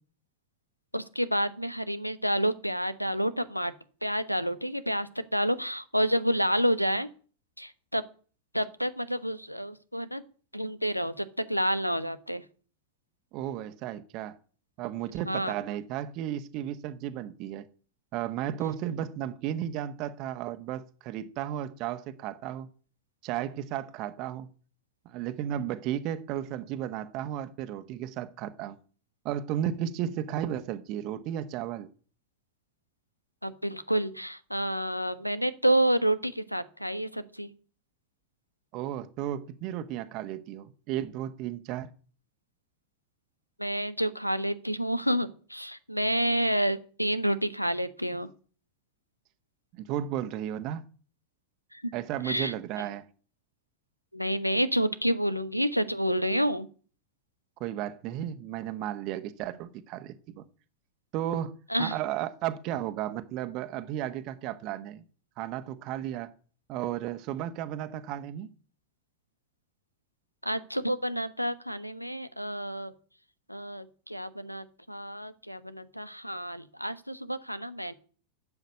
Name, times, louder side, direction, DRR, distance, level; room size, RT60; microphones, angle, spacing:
voice 1, 0.9-3.7 4.0-7.1 7.6-8.0 8.5-10.2 10.5-12.4 15.2-15.5 33.4-37.5 43.6-48.3 51.7-51.9 52.2-52.5 54.1-56.7 61.7-62.0 70.4-72.9 73.5-77.9, equal, 90° left, 1.2 m, -29 dB
voice 2, 13.3-14.4 14.8-17.7 18.1-22.7 23.2-24.5 25.0-28.8 29.2-31.9 38.7-41.9 49.7-50.8 51.9-53.1 57.6-60.4 61.1-65.0 65.4-66.3 66.7-68.5, right 11 dB, 40° right, 1.2 m, -34 dB
12.0 x 8.1 x 9.7 m
figure-of-eight pair, 90°, 0 cm